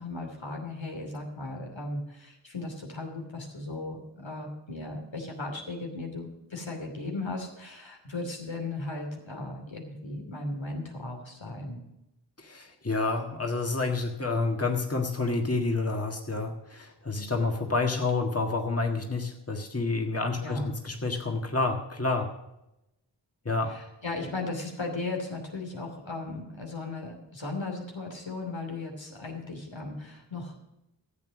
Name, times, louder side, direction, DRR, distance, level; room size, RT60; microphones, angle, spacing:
voice 1, 0.0-11.8 20.4-20.7 23.6-30.6, left 2 dB, 85° left, 1 dB, 2.9 m, -36 dB
voice 2, 12.4-22.3 23.4-23.7, left 3 dB, 30° left, 3 dB, 1.7 m, -29 dB
13.5 x 8.3 x 6.2 m, 0.89 s
wide cardioid pair, 55°, 44 cm